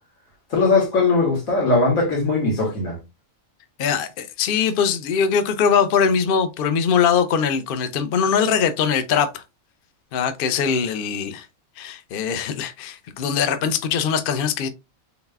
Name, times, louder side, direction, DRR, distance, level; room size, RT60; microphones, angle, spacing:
voice 1, 0.5-3.0, left 3 dB, 85° left, 2.1 m, -19 dB
voice 2, 3.8-9.4 10.1-11.5 11.8-14.7, left 7 dB, 55° left, 0.6 m, -21 dB
4.0 x 3.9 x 2.2 m
omnidirectional pair, 1.4 m